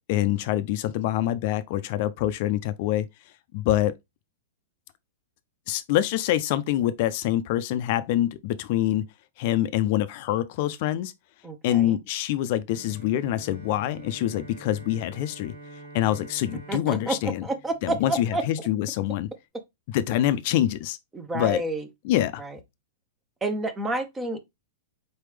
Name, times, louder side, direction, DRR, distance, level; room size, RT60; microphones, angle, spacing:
voice 1, 0.1-3.1 3.5-3.9 5.7-9.0 9.4-11.1 11.6-15.5 15.9-17.5 17.8-19.3 19.9-21.0 21.3-21.6 22.0-22.4, left 13 dB, 50° left, 0.4 m, -25 dB
voice 2, 11.4-12.0 16.7-18.4 21.1-21.9 22.4-22.6 23.4-24.4, right 2 dB, 10° right, 0.7 m, -29 dB
Bowed string instrument, 12.7-18.6, right 1 dB, 70° right, 1.4 m, -46 dB
4.2 x 3.3 x 3.2 m
hypercardioid pair, 145°, 0 cm